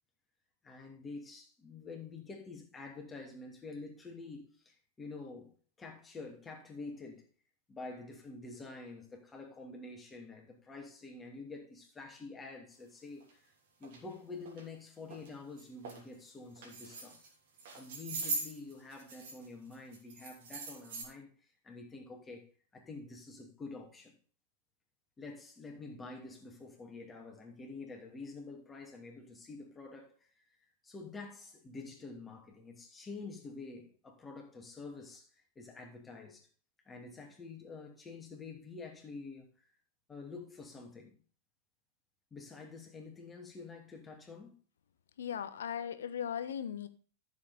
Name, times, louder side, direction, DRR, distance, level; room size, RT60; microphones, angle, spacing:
voice 1, 0.6-7.3 7.7-13.5 13.8-17.2 17.7-24.1 25.2-30.6 30.8-36.5 36.9-39.5 40.1-41.1 42.3-44.5, left 3 dB, 15° left, 2.7 m, -48 dB
sound 1, 13.2-13.3 13.8-14.0 14.5-14.6 15.1-15.3 15.6-16.0 16.6-17.3 17.6-19.5 19.7-21.0, right 3 dB, 55° right, 3.2 m, -41 dB
voice 2, 45.2-46.9, left 8 dB, 65° left, 1.1 m, -38 dB
13.0 x 7.4 x 4.3 m
figure-of-eight pair, 90°, 0 cm